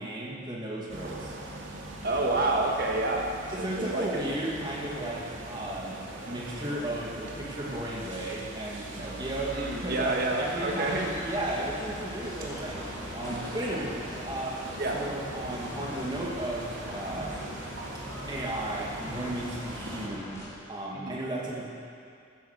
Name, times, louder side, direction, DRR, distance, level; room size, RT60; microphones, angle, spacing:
voice 1, 0.0-1.4 3.5-17.4 18.3-20.3 20.7-21.7, right 1 dB, 20° right, -4 dB, 2.3 m, -35 dB
sound 1, 0.9-20.1, right 1 dB, 85° right, 2.4 m, -40 dB
voice 2, 2.0-3.3 3.6-4.3 4.6-4.7 9.5-11.1 14.8-15.0 20.9-21.2, right 2 dB, 50° right, 0 dB, 1.6 m, -29 dB
sound 2, 9.3-20.5, left 1 dB, 15° left, 2.7 m, -43 dB
15.5 x 10.5 x 6.7 m, 2.4 s
head